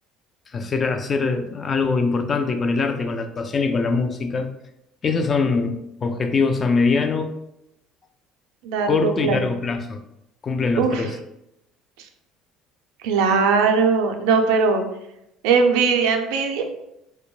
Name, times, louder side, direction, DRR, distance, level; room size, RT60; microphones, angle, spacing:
voice 1, 0.5-4.5 5.0-7.3 8.9-10.0 10.4-11.2, left 4 dB, 35° left, 7 dB, 0.3 m, -22 dB
voice 2, 8.6-9.4 10.8-11.0 13.0-14.8 15.4-16.6, right 5 dB, 80° right, 4 dB, 0.3 m, -19 dB
2.2 x 2.1 x 3.0 m, 0.85 s
supercardioid pair, 90°, 0 cm